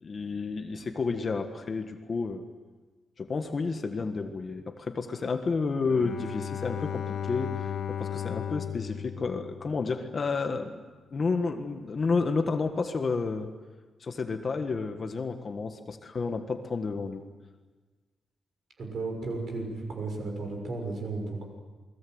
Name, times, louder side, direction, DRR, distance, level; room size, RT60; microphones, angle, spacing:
voice 1, 0.0-2.4 3.2-10.8 11.1-13.5 14.0-17.2, left 4 dB, 35° left, 6 dB, 1.5 m, -31 dB
Bowed string instrument, 5.9-10.2, left 9 dB, 65° left, 1.9 m, -35 dB
voice 2, 18.8-21.4, right 3 dB, 45° right, 2 dB, 6.6 m, -34 dB
28.5 x 21.0 x 8.0 m, 1.3 s
wide cardioid pair, 175°, 0 cm